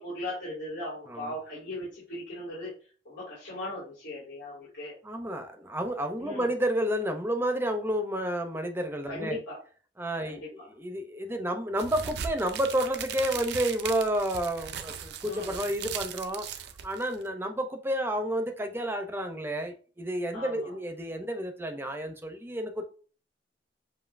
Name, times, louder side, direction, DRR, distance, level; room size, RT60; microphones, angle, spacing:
voice 1, 0.0-5.0 6.2-6.5 9.1-9.6 10.2-10.7 15.2-15.6 20.3-20.7, left 1 dB, 85° left, -9 dB, 2.4 m, -38 dB
voice 2, 5.0-9.4 10.0-10.4 10.7-16.5 16.8-22.8, right 1 dB, 15° right, 5 dB, 0.6 m, -30 dB
sound 1, 11.8-17.3, right 7 dB, 65° right, 0.4 m, -38 dB
7.2 x 2.6 x 2.5 m, 0.39 s
head